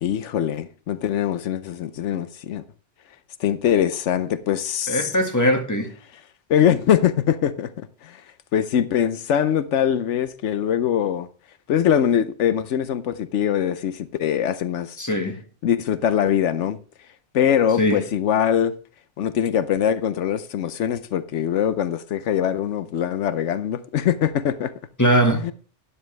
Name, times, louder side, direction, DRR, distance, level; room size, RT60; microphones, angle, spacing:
voice 1, 0.0-2.6 3.4-5.1 6.5-8.2 8.5-11.3 11.7-15.0 15.6-16.8 17.3-18.7 19.2-24.7 25.3-25.5, left 9 dB, 85° left, 1.0 m, -22 dB
voice 2, 4.9-5.9 15.0-15.4 17.8-18.0 25.0-25.4, equal, 15° left, 1.8 m, -20 dB
12.5 x 10.0 x 3.3 m
omnidirectional pair, 1.2 m